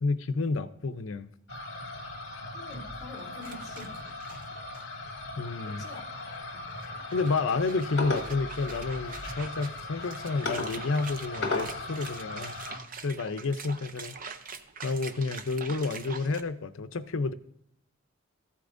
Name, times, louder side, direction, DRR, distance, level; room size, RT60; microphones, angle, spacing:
voice 1, 0.0-1.3 5.4-5.8 7.1-12.6 13.0-14.2 14.8-17.3, left 3 dB, 70° left, 11 dB, 0.6 m, -30 dB
sound 1, 1.5-12.8, left 2 dB, 55° left, 1.4 m, -37 dB
voice 2, 2.5-4.0 5.7-6.1 6.5-6.7, left 2 dB, 20° left, -4 dB, 2.7 m, -46 dB
sound 2, 3.4-4.8 5.2-5.3 6.3-16.4, right 5 dB, 40° right, 0.6 m, -45 dB
14.5 x 8.4 x 2.6 m, 0.76 s
head